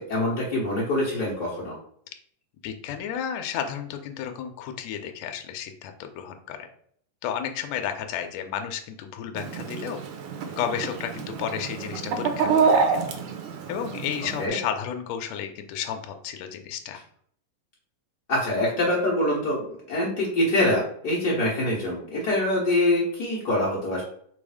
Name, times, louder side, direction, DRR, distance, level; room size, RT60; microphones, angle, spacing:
voice 1, 0.0-1.8 14.4-14.6 18.3-19.6 19.9-24.0, left 1 dB, 60° left, -5 dB, 1.0 m, -24 dB
voice 2, 2.6-6.7 7.2-10.0 10.6-13.0 13.7-17.0, left 9 dB, 75° left, 6 dB, 1.7 m, -32 dB
Chicken rooster, 9.3-14.5, right 5 dB, 75° right, 2.0 m, -27 dB
5.3 x 2.0 x 4.8 m, 0.64 s
omnidirectional pair, 3.5 m